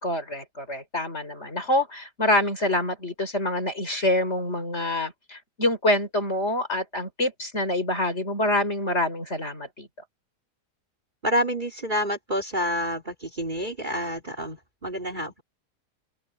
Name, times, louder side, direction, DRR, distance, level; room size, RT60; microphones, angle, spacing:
voice 1, 0.0-9.9, left 1 dB, 40° left, 5.9 m, -26 dB
voice 2, 11.2-15.4, equal, 25° right, 3.2 m, -28 dB
open air
omnidirectional pair, 1.8 m